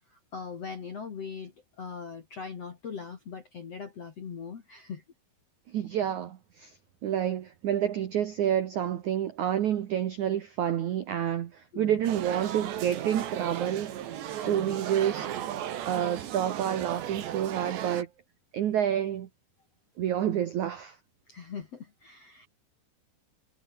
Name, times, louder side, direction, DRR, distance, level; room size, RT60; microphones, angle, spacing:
voice 1, 0.1-5.0 11.7-12.0 14.4-14.7 21.3-22.5, left 6 dB, 45° left, 2.4 m, -41 dB
voice 2, 5.7-6.8 7.0-14.0 14.3-15.3 15.8-18.1 18.5-19.3 20.0-21.0, right 10 dB, 90° right, 1.7 m, -29 dB
sound 1, 12.0-18.0, right 11 dB, 65° right, 4.2 m, -35 dB
omnidirectional pair, 5.5 m